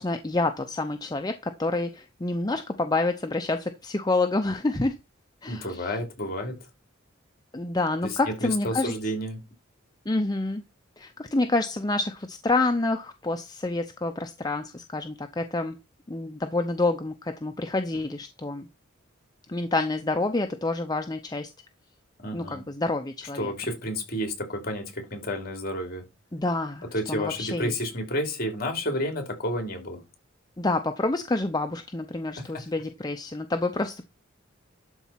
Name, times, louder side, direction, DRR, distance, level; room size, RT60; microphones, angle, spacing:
voice 1, 0.0-5.0 5.4-5.9 7.5-8.9 10.1-10.6 11.0-15.8 16.1-18.7 19.5-21.5 22.3-23.5 26.3-27.7 30.6-34.1, left 2 dB, 20° left, 0.6 m, -28 dB
voice 2, 5.5-6.6 8.0-9.4 22.2-22.6 23.4-26.0 26.9-30.0 32.4-32.7, equal, 45° left, 3.2 m, -31 dB
12.0 x 4.1 x 5.7 m
head